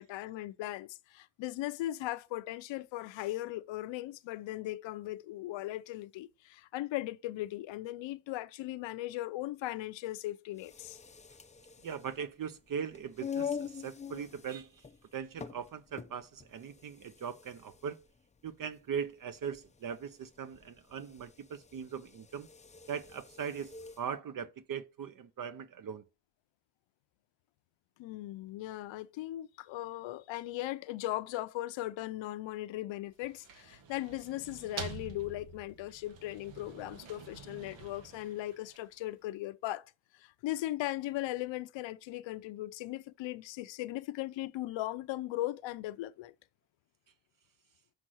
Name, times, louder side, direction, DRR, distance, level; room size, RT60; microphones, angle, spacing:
voice 1, 0.0-11.0 28.0-39.9 40.1-46.3, left 15 dB, 85° left, 0.7 m, -38 dB
sound 1, 10.5-24.1, left 7 dB, 15° left, 0.5 m, -45 dB
voice 2, 11.8-14.8 15.1-18.0 18.4-22.5 22.9-26.0, right 7 dB, 50° right, 0.6 m, -40 dB
sound 2, 33.1-39.1, right 6 dB, 85° right, 1.4 m, -47 dB
6.3 x 5.9 x 6.2 m
cardioid pair, 105°, 44 cm